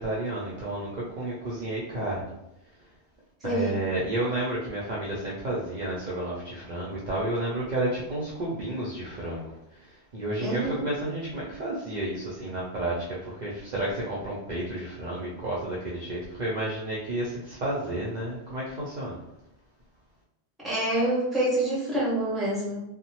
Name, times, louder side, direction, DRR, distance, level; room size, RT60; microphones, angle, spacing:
voice 1, 0.0-2.3 3.4-19.2, right 1 dB, 50° right, -6 dB, 0.6 m, -31 dB
voice 2, 3.4-3.8 10.4-10.8 20.6-22.8, right 1 dB, ahead, -7 dB, 0.8 m, -27 dB
2.8 x 2.1 x 2.9 m, 0.85 s
omnidirectional pair, 1.1 m